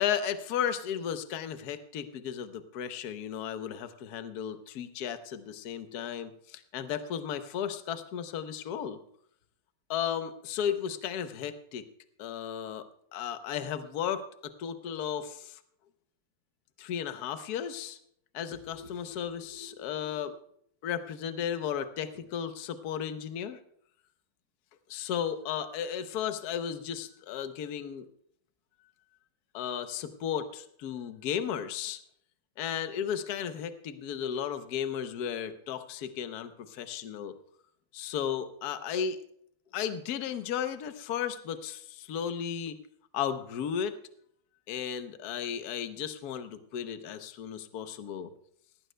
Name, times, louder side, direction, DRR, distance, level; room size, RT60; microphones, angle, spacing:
voice 1, 0.0-9.0 9.9-11.8 12.2-15.6 16.8-18.0 18.3-20.4 20.8-23.6 24.9-28.0 29.5-32.0 32.6-37.4 37.9-39.2 39.7-42.8 43.1-43.9 44.7-48.3, left 8 dB, 60° left, 10 dB, 1.2 m, -34 dB
17.5 x 15.5 x 2.2 m, 0.68 s
omnidirectional pair, 2.1 m